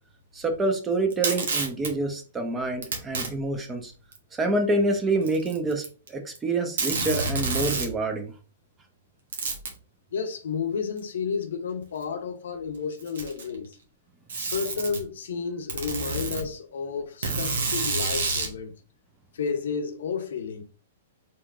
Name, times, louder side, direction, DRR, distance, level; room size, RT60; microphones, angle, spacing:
voice 1, 0.3-3.9 4.3-8.3, right 2 dB, 15° right, 0.9 m, -27 dB
Packing tape duct tape, 1.1-1.9 2.8-3.3 4.1-4.2 5.2-6.1 6.3-6.4 6.8-7.9 9.3-9.8 11.0-11.1 12.0-12.1 12.9-13.5 14.3-15.0 15.7-16.4 17.2-18.5, right 3 dB, 75° right, 1.2 m, -28 dB
voice 2, 10.1-13.8 14.4-18.7 19.3-20.6, left 6 dB, 75° left, 0.8 m, -31 dB
4.3 x 3.6 x 2.5 m
hypercardioid pair, 120°, 0 cm